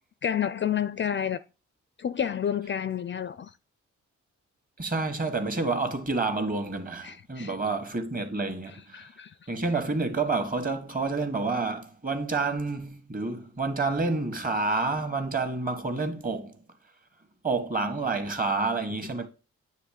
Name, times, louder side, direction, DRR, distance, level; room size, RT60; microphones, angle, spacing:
voice 1, 0.2-1.4 2.0-3.5 7.0-7.5 8.9-9.5, left 9 dB, 40° left, 0.4 m, -30 dB
voice 2, 4.8-9.1 9.5-16.6 17.4-19.3, right 3 dB, 30° right, 1.7 m, -29 dB
9.3 x 3.2 x 6.7 m
cardioid pair, 110°, 30 cm